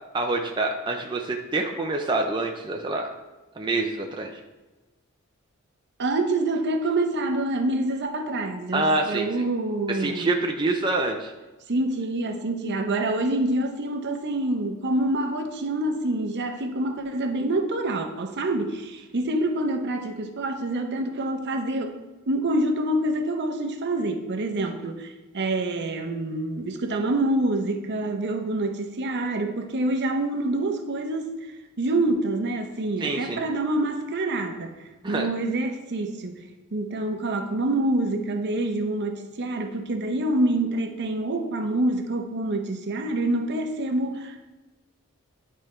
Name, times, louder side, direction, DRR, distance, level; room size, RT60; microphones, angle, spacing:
voice 1, 0.1-3.1 3.6-4.3 8.7-9.5 9.9-11.3 33.0-33.4 35.0-35.3, right 2 dB, 20° right, 2 dB, 0.5 m, -26 dB
voice 2, 6.0-10.3 11.7-22.0 22.3-31.4 31.8-34.7 35.1-36.4 36.7-44.5, right 2 dB, 55° right, 5 dB, 0.7 m, -26 dB
10.0 x 4.4 x 3.2 m, 1.2 s
head